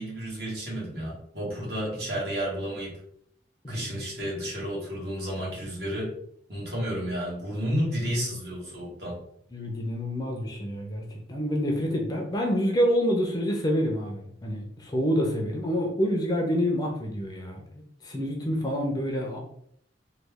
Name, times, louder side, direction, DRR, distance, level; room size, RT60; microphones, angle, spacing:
voice 1, 0.0-3.0 3.7-6.1 6.5-9.2, equal, 60° right, -5 dB, 1.5 m, -31 dB
voice 2, 9.5-17.6 18.0-19.4, equal, 20° left, 1 dB, 0.5 m, -27 dB
3.1 x 2.2 x 3.4 m, 0.67 s
head